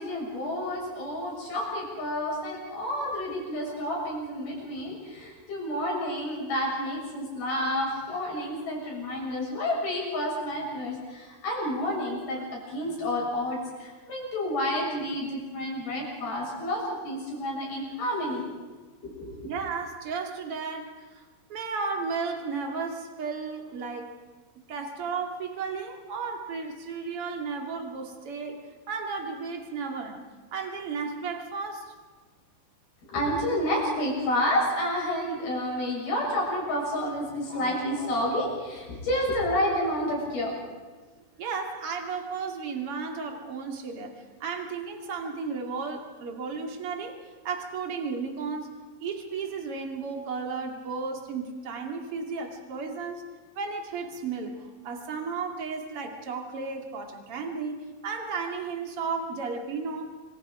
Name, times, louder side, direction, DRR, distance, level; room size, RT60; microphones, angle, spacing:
voice 1, 0.0-18.4 19.0-19.5 33.1-40.5, left 1 dB, 75° left, -2 dB, 9.0 m, -30 dB
voice 2, 19.4-21.2 21.5-24.1 24.7-30.2 30.5-31.9 41.4-47.2 47.4-48.7 49.0-53.2 53.5-60.1, right 5 dB, 40° right, 3 dB, 3.0 m, -34 dB
27.5 x 25.0 x 5.0 m, 1.4 s
omnidirectional pair, 4.4 m